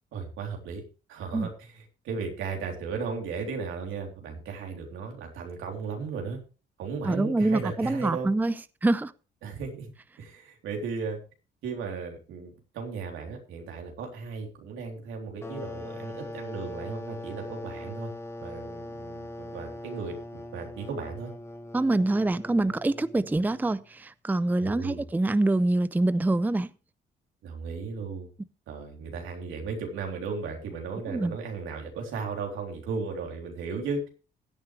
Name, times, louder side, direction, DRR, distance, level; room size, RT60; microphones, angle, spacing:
voice 1, 0.1-0.8 1.1-6.4 6.8-8.3 9.4-9.9 10.2-11.2 11.6-18.1 18.4-21.3 24.6-25.0 27.4-28.3 28.7-34.0, right 5 dB, 90° right, 3.6 m, -35 dB
voice 2, 7.0-8.5 8.8-9.1 21.7-26.7 31.1-31.3, right 2 dB, 10° right, 0.5 m, -25 dB
sound 1, 15.4-23.8, left 1 dB, 10° left, 1.3 m, -41 dB
16.0 x 9.2 x 3.3 m
cardioid pair, 90°, 20 cm